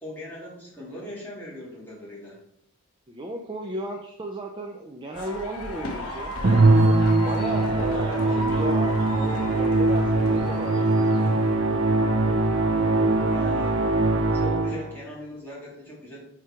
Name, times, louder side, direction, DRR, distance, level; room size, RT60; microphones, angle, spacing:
voice 1, 0.0-2.4 7.7-8.3 13.2-13.9 14.3-16.2, left 1 dB, 10° left, -7 dB, 2.1 m, -39 dB
voice 2, 3.1-6.4 7.2-10.8, right 1 dB, 20° right, 1 dB, 0.5 m, -35 dB
sound 1, 5.1-11.6, left 1 dB, 75° left, 0.9 m, -36 dB
Musical instrument, 6.4-15.0, right 2 dB, 65° right, 0.7 m, -21 dB
4.8 x 4.4 x 4.9 m, 0.73 s
head